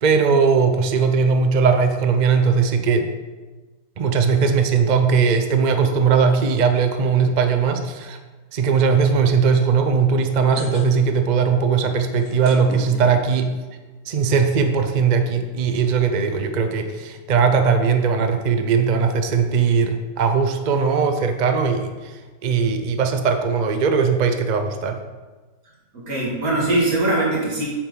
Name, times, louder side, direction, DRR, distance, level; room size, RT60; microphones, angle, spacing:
voice 1, 0.0-3.1 4.0-8.2 8.5-13.5 14.1-22.1 22.4-25.0, right 5 dB, 50° right, 6 dB, 0.5 m, -19 dB
sound 1, 10.2-11.3 11.6-11.7 12.0-13.5 14.2-14.3 14.5-14.6 14.8-15.0, equal, 75° left, 3.0 m, -37 dB
voice 2, 25.9-27.7, right 2 dB, 65° right, -4 dB, 2.8 m, -21 dB
8.8 x 7.0 x 3.9 m, 1.3 s
omnidirectional pair, 1.6 m